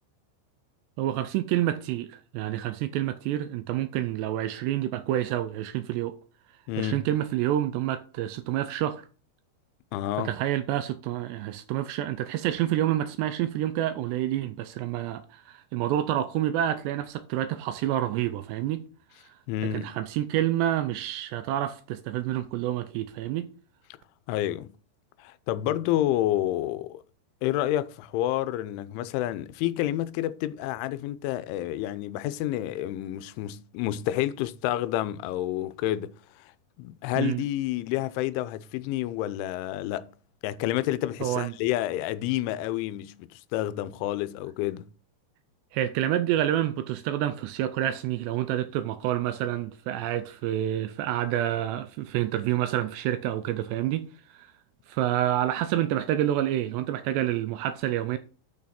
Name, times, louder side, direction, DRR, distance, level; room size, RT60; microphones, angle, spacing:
voice 1, 1.0-6.2 6.8-9.1 10.2-18.8 19.7-23.5 37.2-37.4 41.2-41.5 45.7-54.1 54.3-54.5 54.9-58.2, right 12 dB, 80° right, 2.6 m, -28 dB
voice 2, 6.7-7.0 9.9-10.3 19.5-20.0 24.3-24.7 25.2-27.0 27.4-36.5 36.8-40.1 40.4-44.9, left 13 dB, 90° left, 3.0 m, -29 dB
9.1 x 6.3 x 4.2 m
omnidirectional pair, 5.3 m